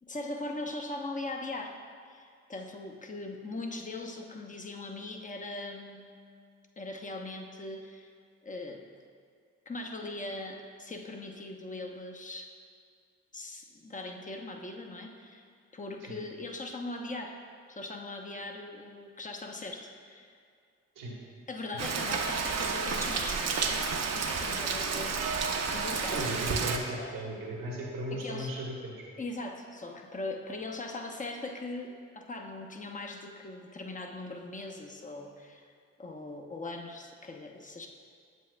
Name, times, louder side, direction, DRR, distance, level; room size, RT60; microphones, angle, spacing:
voice 1, 0.0-1.8 2.1-6.2 6.8-8.1 8.4-8.8 9.7-12.5 13.3-15.4 15.7-17.4 17.7-20.3 21.5-23.9 24.1-25.3 25.7-26.3 26.9-27.2 28.1-28.6 29.2-35.7 36.0-37.9, left 2 dB, 25° left, 2 dB, 0.9 m, -40 dB
Rain, 21.8-26.8, right 5 dB, 55° right, 0.7 m, -31 dB
voice 2, 26.1-28.9, right 1 dB, 80° right, -2 dB, 1.3 m, -36 dB
8.2 x 7.5 x 2.2 m, 2.2 s
supercardioid pair, 50°, 32 cm